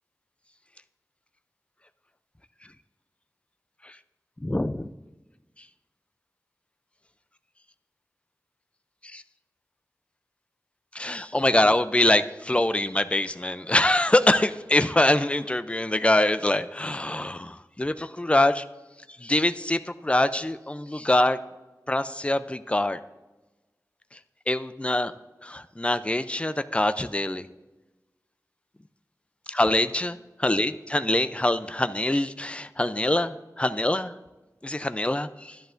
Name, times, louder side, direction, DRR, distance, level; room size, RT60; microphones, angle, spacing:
voice 1, 4.4-4.9 9.1-9.2 10.9-18.6 19.2-21.4 21.9-23.0 24.5-25.1 25.4-27.5 29.5-34.1 34.6-35.6, left 1 dB, 15° left, 12 dB, 0.4 m, -24 dB
13.0 x 10.5 x 2.5 m, 1.1 s
wide cardioid pair, 60°, 7 cm